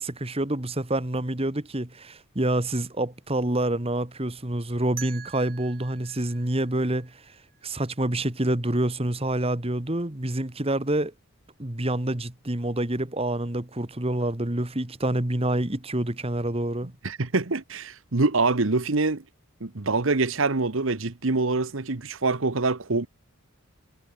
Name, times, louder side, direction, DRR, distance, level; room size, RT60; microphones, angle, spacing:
voice 1, 0.0-7.1 7.6-11.1 11.6-16.9, right 1 dB, 30° right, 1.7 m, -27 dB
sound 1, 5.0-7.8, right 10 dB, 45° right, 4.6 m, -45 dB
voice 2, 17.0-19.2 19.6-23.1, right 3 dB, 70° right, 1.2 m, -25 dB
head